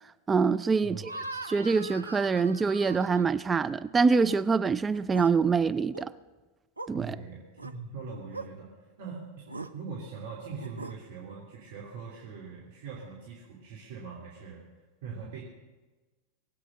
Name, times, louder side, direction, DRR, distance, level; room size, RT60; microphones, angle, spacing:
voice 1, 0.3-1.1 1.4-6.1 6.9-7.2, right 5 dB, 15° right, 0.4 m, -25 dB
sound 1, 1.0-3.7 4.1-4.4 4.9-5.3 5.8-6.1 6.8-6.9 7.6-7.7 8.3-8.5 9.5-9.7 10.6-11.0, right 2 dB, 80° right, 0.7 m, -41 dB
voice 2, 7.0-9.5 9.7-14.6 15.0-15.4, right 5 dB, 55° right, 3.0 m, -42 dB
21.5 x 8.6 x 6.6 m
figure-of-eight pair, 90°, 0 cm